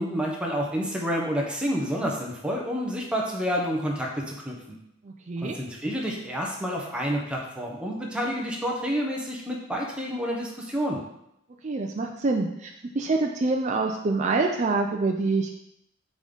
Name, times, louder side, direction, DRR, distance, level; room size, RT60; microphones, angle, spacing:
voice 1, 0.0-4.8 5.4-11.0, equal, 5° right, -2 dB, 0.9 m, -29 dB
voice 2, 5.0-5.6 11.6-15.6, right 3 dB, 35° right, 2 dB, 0.4 m, -26 dB
5.1 x 3.8 x 5.3 m, 0.80 s
head